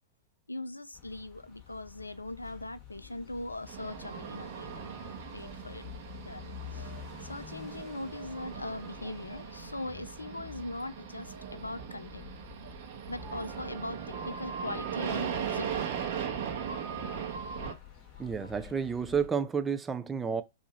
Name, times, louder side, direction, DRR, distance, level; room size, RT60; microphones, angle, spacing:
voice 1, 0.5-5.9 6.2-6.4 6.7-6.9 7.2-12.3 13.1-16.1 16.6-17.8 18.2-18.5, left 2 dB, 85° left, 0.4 m, -41 dB
sound 1, 0.9-19.3, left 11 dB, 30° left, 2.2 m, -50 dB
sound 2, 3.7-17.7, right 8 dB, 50° right, 0.9 m, -39 dB
voice 2, 18.2-20.4, right 6 dB, 15° right, 0.5 m, -31 dB
4.5 x 2.7 x 4.1 m
figure-of-eight pair, 100°, 0 cm